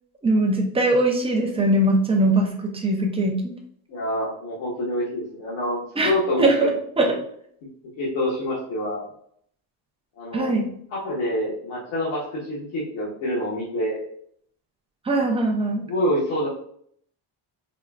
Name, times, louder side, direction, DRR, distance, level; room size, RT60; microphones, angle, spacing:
voice 1, 0.2-3.6 6.0-6.1 6.4-7.1 10.3-10.7 15.1-15.8, right 1 dB, 15° right, 1 dB, 0.4 m, -21 dB
voice 2, 3.9-6.7 8.0-9.1 10.2-10.5 10.9-14.0 15.8-16.5, left 1 dB, 70° left, -6 dB, 1.2 m, -26 dB
4.3 x 3.0 x 2.4 m, 0.65 s
cardioid pair, 175°, 49 cm